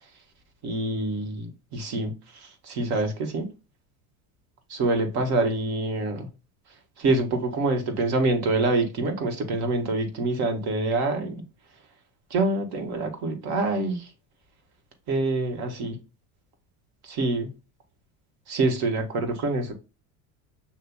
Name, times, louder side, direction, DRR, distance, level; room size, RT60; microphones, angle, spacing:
voice 1, 0.6-3.5 4.7-6.3 7.0-11.4 12.3-14.1 15.1-16.0 17.0-17.5 18.5-19.7, right 2 dB, 65° right, 1.6 m, -26 dB
6.7 x 2.7 x 2.3 m
supercardioid pair, 95°, 41 cm